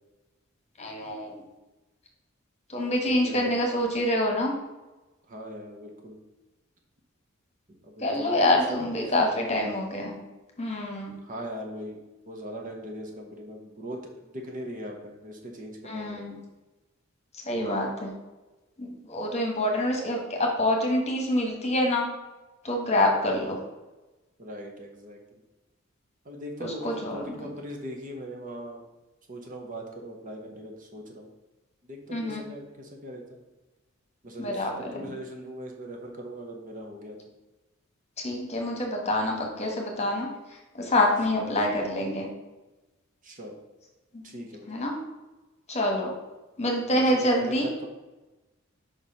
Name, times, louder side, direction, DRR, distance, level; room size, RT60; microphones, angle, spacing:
voice 1, 0.8-1.4 2.7-4.5 8.0-10.2 10.6-11.2 15.8-16.4 17.5-18.1 18.8-22.1 22.6-23.6 26.6-27.4 32.1-32.4 34.4-35.1 38.2-40.3 40.7-42.3 44.1-44.2 44.7-44.9 45.7-46.1 46.6-47.7, left 1 dB, 30° left, 1 dB, 1.4 m, -26 dB
voice 2, 3.1-3.6 5.3-6.2 7.9-9.8 11.2-12.0 12.3-16.3 23.2-23.4 24.4-25.4 26.2-28.8 29.3-31.3 31.8-33.4 34.2-37.2 41.3-41.5 43.2-43.5 44.2-44.8 46.9-47.9, equal, 40° right, 2 dB, 1.1 m, -40 dB
5.1 x 4.7 x 5.5 m, 1.1 s
head